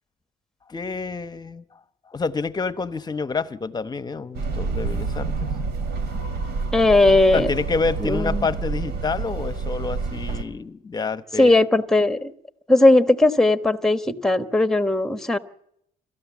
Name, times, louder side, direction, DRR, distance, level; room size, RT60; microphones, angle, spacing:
voice 1, 0.7-1.6 2.1-5.6 7.3-11.6, left 4 dB, 25° left, 14 dB, 0.9 m, -28 dB
sound 1, 4.3-10.4, right 4 dB, 80° right, 2.9 m, -28 dB
voice 2, 6.7-7.5 8.0-8.5 11.4-12.3 12.7-15.4, left 2 dB, 5° left, 10 dB, 1.2 m, -18 dB
27.0 x 14.0 x 7.3 m, 0.73 s
cardioid pair, 110°, 17 cm